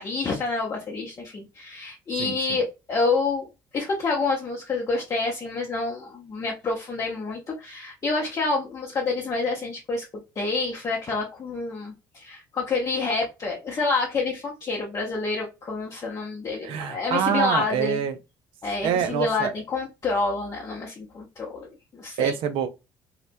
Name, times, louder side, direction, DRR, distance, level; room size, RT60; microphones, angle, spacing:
voice 1, 0.0-3.5 3.7-10.0 10.4-18.0 18.6-22.3, left 3 dB, 35° left, 0.7 m, -28 dB
voice 2, 2.2-2.6 16.6-18.2 18.8-19.5 22.2-22.7, right 8 dB, 60° right, 0.4 m, -26 dB
2.8 x 2.1 x 2.5 m
hypercardioid pair, 55°, 10 cm